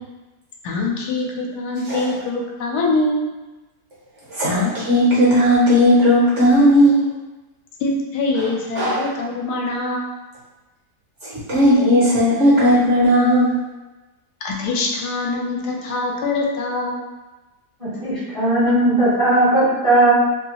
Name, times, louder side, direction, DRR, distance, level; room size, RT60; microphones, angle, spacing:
voice 1, 0.6-3.3 7.8-10.1 14.4-17.0, left 2 dB, 80° left, -1 dB, 1.1 m, -24 dB
voice 2, 4.3-7.0 8.8-9.0 11.5-13.5, equal, 55° right, -7 dB, 0.9 m, -15 dB
voice 3, 17.8-20.1, right 1 dB, 30° right, -11 dB, 0.7 m, -17 dB
2.8 x 2.3 x 2.8 m, 1.1 s
omnidirectional pair, 1.7 m